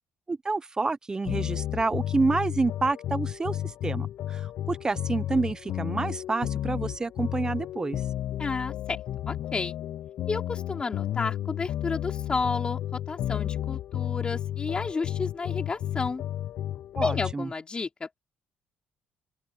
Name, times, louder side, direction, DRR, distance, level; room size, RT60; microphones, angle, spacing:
voice 1, 0.3-8.0 17.0-17.5, right 3 dB, 15° right, 0.5 m, -28 dB
sound 1, 1.3-17.3, left 12 dB, 60° left, 0.4 m, -32 dB
voice 2, 8.4-9.0 9.3-9.8 10.3-16.2 17.0-18.2, left 4 dB, 25° left, 3.2 m, -31 dB
open air
cardioid pair, 140°, 4 cm